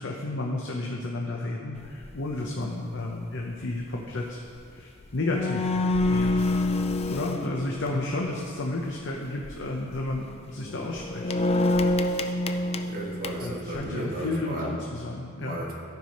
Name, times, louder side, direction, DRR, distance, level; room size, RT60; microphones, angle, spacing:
voice 1, 0.0-4.4 4.7-5.7 6.1-6.4 7.1-11.3 13.4-15.6, left 2 dB, 60° left, -1 dB, 0.8 m, -32 dB
sound 1, 1.8-2.1 2.6-2.8 4.8-4.9 5.0-8.4 9.3-9.6 9.9-10.2 10.6-13.8, left 2 dB, 30° left, 0.4 m, -27 dB
voice 2, 12.8-14.8 15.4-15.8, right 1 dB, 45° right, -3 dB, 1.7 m, -34 dB
13.5 x 4.8 x 5.3 m, 2.5 s
head